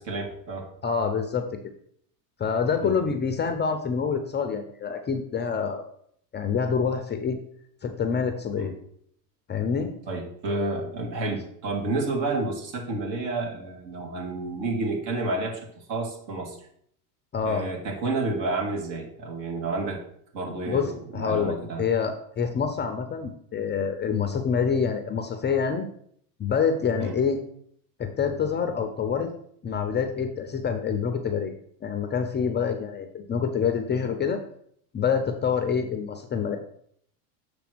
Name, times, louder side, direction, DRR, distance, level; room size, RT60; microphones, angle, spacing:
voice 1, 0.0-0.7 2.8-2.9 8.6-8.7 10.1-15.6 15.9-16.6 17.4-20.0 20.3-21.9 27.0-27.1, right 2 dB, 55° right, 0 dB, 2.5 m, -30 dB
voice 2, 0.8-1.4 2.4-5.8 6.3-7.4 7.8-8.7 9.5-9.9 17.3-17.7 20.7-25.9 26.4-27.4 28.0-29.3 29.6-31.5 31.8-34.4 34.9-36.6, left 6 dB, 20° left, 6 dB, 0.6 m, -26 dB
7.0 x 3.3 x 6.1 m, 0.67 s
hypercardioid pair, 100°, 48 cm